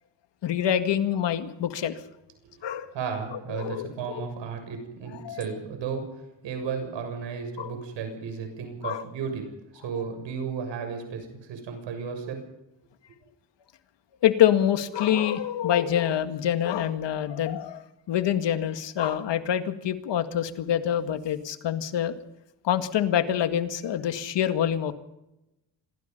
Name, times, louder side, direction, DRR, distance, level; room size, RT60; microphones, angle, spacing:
voice 1, 0.4-2.0 2.6-2.9 3.3-4.3 5.2-5.4 7.6-7.7 8.8-9.0 14.2-22.2 22.6-24.9, left 10 dB, 75° left, 9 dB, 2.1 m, -26 dB
voice 2, 2.9-6.1 6.4-9.5 9.7-12.4, right 6 dB, 85° right, 6 dB, 7.1 m, -34 dB
26.5 x 20.0 x 5.6 m, 0.91 s
cardioid pair, 80°, 43 cm